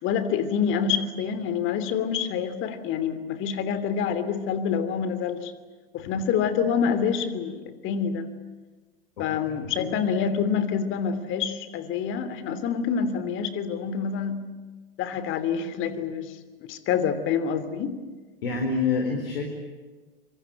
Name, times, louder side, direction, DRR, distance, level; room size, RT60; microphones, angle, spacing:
voice 1, 0.0-5.5 5.9-8.3 9.2-14.5 15.0-16.4 16.7-17.9, left 7 dB, 40° left, 12 dB, 3.1 m, -27 dB
voice 2, 18.4-19.4, left 4 dB, 65° left, 3 dB, 4.5 m, -26 dB
26.0 x 25.0 x 8.9 m, 1.3 s
figure-of-eight pair, 85°, 30 cm